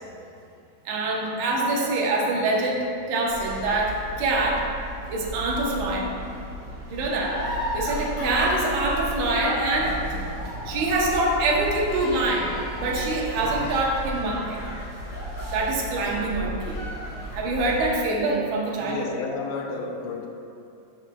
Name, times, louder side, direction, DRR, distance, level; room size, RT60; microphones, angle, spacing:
voice 1, 0.9-4.6 5.1-6.1 6.9-7.4 7.7-10.0 10.7-12.5 12.8-14.6 15.5-16.8 17.3-19.1, right 2 dB, 75° right, -2 dB, 2.4 m, -25 dB
sound 1, 3.3-17.9, equal, 50° right, 1.5 m, -35 dB
sound 2, 7.2-16.2 16.6-17.6, left 1 dB, 45° left, 2.6 m, -36 dB
voice 2, 18.8-20.3, left 4 dB, 80° left, 2 dB, 2.1 m, -32 dB
12.5 x 6.4 x 2.2 m, 2.6 s
omnidirectional pair, 3.6 m